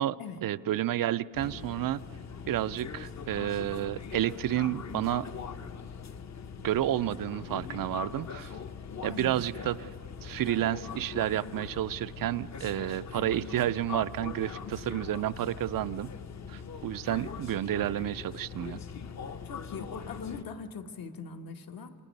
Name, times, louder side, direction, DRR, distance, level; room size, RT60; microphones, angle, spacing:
voice 1, 0.0-2.0 2.5-5.3 6.6-8.5 9.0-9.9 10.2-16.1 16.5-18.8, right 13 dB, 70° right, 15 dB, 0.5 m, -30 dB
sound 1, 1.3-20.4, left 6 dB, 50° left, 0.8 m, -41 dB
voice 2, 9.1-9.5 13.1-13.4 19.4-21.9, left 5 dB, 70° left, 5 dB, 1.3 m, -41 dB
27.5 x 26.5 x 5.3 m, 2.5 s
wide cardioid pair, 115°, 36 cm